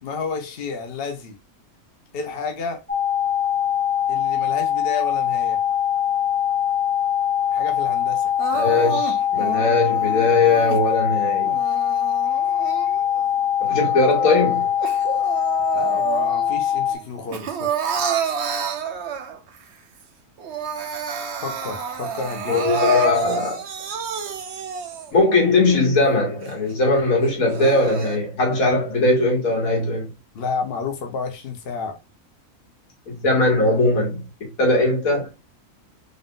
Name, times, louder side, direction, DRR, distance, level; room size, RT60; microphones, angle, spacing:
voice 1, 0.0-1.4 2.1-2.8 4.1-5.6 7.5-8.3 15.7-17.7 18.0-18.1 21.4-22.7 30.3-32.0 34.7-34.8, left 5 dB, 50° left, 0.9 m, -31 dB
sound 1, 2.9-16.9, left 10 dB, 5° left, 0.8 m, -22 dB
Crying sobbing, 8.4-10.8 11.4-13.2 13.7-16.6 16.9-19.6 20.0-20.1 20.4-25.2 25.8-25.9 26.4-26.5 27.2-28.2, right 7 dB, 60° right, 0.8 m, -30 dB
voice 2, 8.5-11.5 13.6-14.7 22.5-23.6 25.1-30.1 33.1-35.3, left 2 dB, 75° left, 1.8 m, -20 dB
3.8 x 2.5 x 3.6 m
omnidirectional pair, 1.5 m